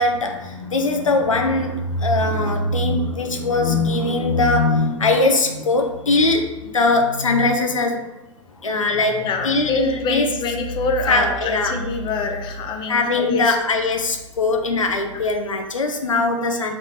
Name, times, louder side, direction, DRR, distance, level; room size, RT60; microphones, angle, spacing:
voice 1, 0.0-8.0 8.6-10.3 11.1-11.7 12.9-16.7, left 2 dB, 90° left, 4 dB, 0.4 m, -20 dB
voice 2, 9.2-13.6 15.0-15.1, left 4 dB, 30° left, 4 dB, 0.6 m, -25 dB
3.2 x 2.9 x 4.0 m, 1.0 s
figure-of-eight pair, 95°, 16 cm